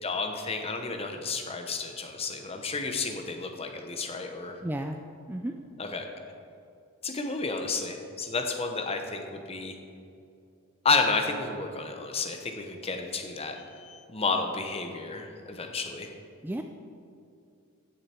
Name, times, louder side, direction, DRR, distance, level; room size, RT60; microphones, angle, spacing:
voice 1, 0.0-4.6 5.8-6.2 7.0-9.8 10.8-16.1, left 4 dB, 25° left, 4 dB, 0.9 m, -31 dB
voice 2, 4.6-5.0 5.3-5.6 16.4-16.6, right 1 dB, 10° right, 5 dB, 0.3 m, -32 dB
15.5 x 6.7 x 4.4 m, 2.5 s
head